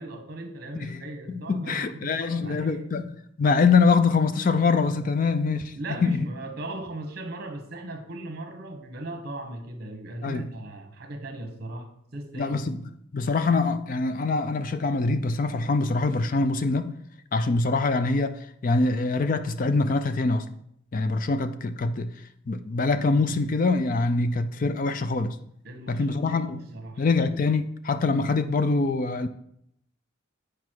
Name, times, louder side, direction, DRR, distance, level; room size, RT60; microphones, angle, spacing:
voice 1, 0.0-2.8 5.7-12.6 25.6-27.1, right 1 dB, 50° right, 1.2 m, -38 dB
voice 2, 1.3-3.1 3.4-5.8 6.0-6.3 10.2-10.4 12.4-12.8 13.1-16.9 17.3-20.5 20.9-22.1 22.5-25.4 25.9-26.6 27.0-29.3, left 4 dB, 40° left, 0.4 m, -24 dB
8.3 x 4.9 x 4.5 m
head